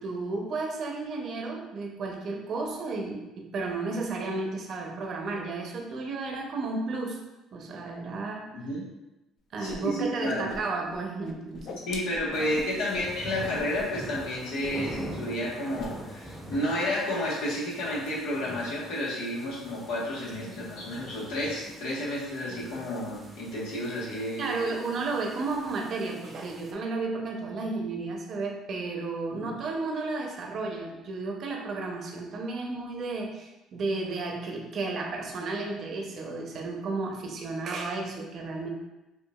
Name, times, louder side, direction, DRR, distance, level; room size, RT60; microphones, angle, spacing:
voice 1, 0.0-7.2 7.5-8.5 9.5-11.8 12.4-12.5 20.4-20.7 22.5-22.8 24.4-38.7, right 3 dB, 55° right, 1 dB, 0.7 m, -33 dB
voice 2, 9.6-10.5 11.9-24.5 29.3-29.6, left 1 dB, 85° left, -6 dB, 1.3 m, -31 dB
Whoosh swoosh swish, 9.7-9.8 10.0-11.0 11.2-13.1 13.5-13.8 14.1-14.3 14.6-15.1 15.4-15.9, left 4 dB, 55° left, 0.4 m, -41 dB
sound 1, 12.3-26.7, right 1 dB, 10° right, 0.7 m, -44 dB
4.5 x 2.4 x 2.4 m, 1.0 s
supercardioid pair, 90°, 0 cm